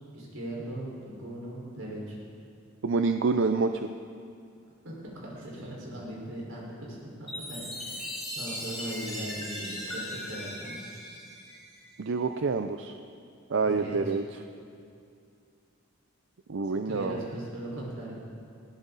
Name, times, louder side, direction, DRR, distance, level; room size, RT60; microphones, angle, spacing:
voice 1, 0.1-2.2 4.8-8.1 8.3-10.8 13.6-14.1 16.6-18.1, right 1 dB, 85° right, -4 dB, 5.1 m, -39 dB
voice 2, 2.8-3.9 12.0-12.9 13.5-14.2 16.5-17.2, right 4 dB, 65° right, 8 dB, 0.5 m, -27 dB
Chime, 7.3-12.0, left 1 dB, ahead, 4.6 m, -38 dB
20.5 x 15.5 x 4.1 m, 2.4 s
head